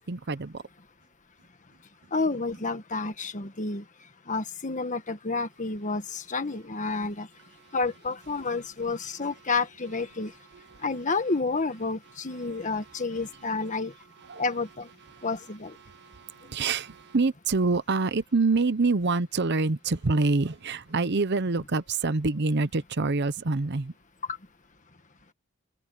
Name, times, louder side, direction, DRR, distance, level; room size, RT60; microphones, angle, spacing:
voice 1, 0.1-0.6 10.7-10.8 14.3-14.4 15.1-15.2 15.8-23.9, right 3 dB, 55° right, 0.8 m, -26 dB
voice 2, 2.1-3.8 4.3-7.3 7.7-10.3 10.8-13.9 14.4-14.9 15.2-15.7, left 3 dB, 35° left, 1.6 m, -30 dB
head